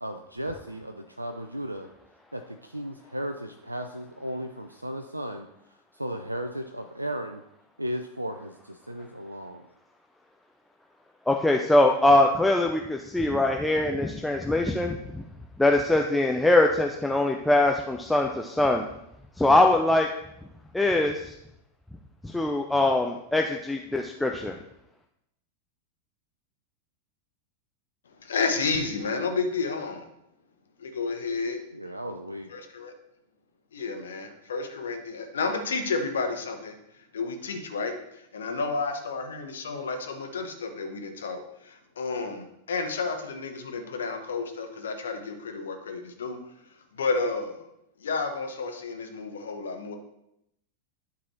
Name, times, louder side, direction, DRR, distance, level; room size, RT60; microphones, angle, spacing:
voice 1, 0.0-1.9 2.3-5.5 5.9-7.4 7.8-9.7 31.7-32.5, equal, 85° right, 6 dB, 0.4 m, -35 dB
voice 2, 11.3-15.2 15.6-18.8 19.4-20.1 20.7-21.3 22.2-24.5, left 2 dB, 5° left, 2 dB, 0.5 m, -22 dB
voice 3, 28.2-30.1 30.8-31.6 32.5-32.9 33.7-36.7 37.1-37.9 38.3-46.4 47.0-47.6 48.0-50.0, left 4 dB, 65° left, 6 dB, 1.1 m, -31 dB
10.5 x 4.1 x 4.4 m, 0.81 s
figure-of-eight pair, 90°, 0 cm